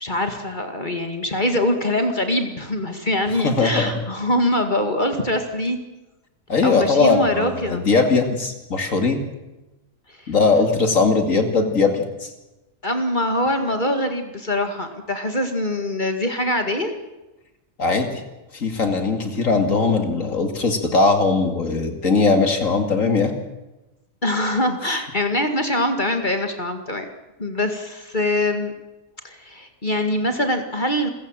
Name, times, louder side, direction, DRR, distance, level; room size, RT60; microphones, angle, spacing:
voice 1, 0.0-5.8 6.6-7.8 10.2-10.3 12.8-16.9 24.2-27.1 27.4-28.7 29.2-31.1, left 1 dB, 35° left, 6 dB, 2.2 m, -23 dB
voice 2, 3.4-4.0 6.5-9.2 10.3-12.3 17.8-18.2 18.5-23.3, left 4 dB, 75° left, 6 dB, 2.8 m, -20 dB
29.0 x 15.5 x 7.6 m, 1.0 s
omnidirectional pair, 1.4 m